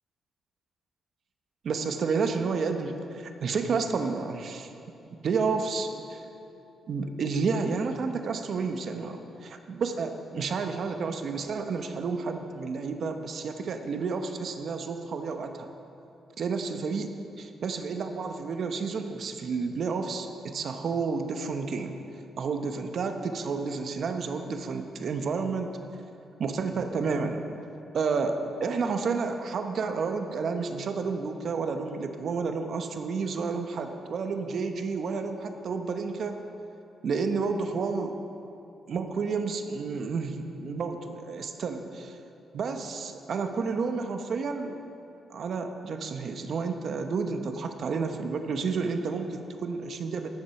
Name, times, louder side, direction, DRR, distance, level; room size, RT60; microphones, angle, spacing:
voice 1, 1.6-4.7 5.2-6.2 6.9-15.7 16.4-17.1 17.4-22.0 22.4-25.7 26.4-27.4 27.9-36.4 37.0-38.1 38.9-42.2 42.5-44.7 45.3-50.3, right 4 dB, 60° right, 6 dB, 0.9 m, -30 dB
14.0 x 7.4 x 5.8 m, 2.8 s
cardioid pair, 105°, 0 cm